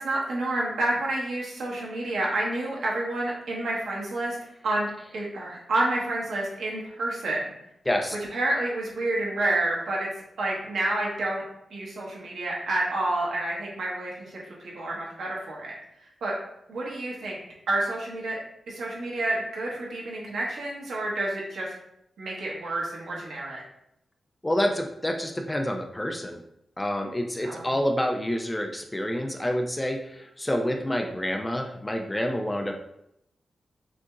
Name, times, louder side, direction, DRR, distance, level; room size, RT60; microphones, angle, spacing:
voice 1, 0.0-4.4 4.6-7.5 8.3-10.1 10.4-11.4 11.7-15.7 16.2-16.3 16.7-17.4 17.7-18.4 18.7-21.7 22.2-23.6 27.4-27.7, right 2 dB, 80° right, -3 dB, 1.3 m, -29 dB
voice 2, 7.9-8.2 24.4-26.4 26.8-32.8, left 1 dB, 10° left, 3 dB, 0.4 m, -28 dB
6.1 x 2.8 x 2.4 m, 0.79 s
wide cardioid pair, 145°, 0 cm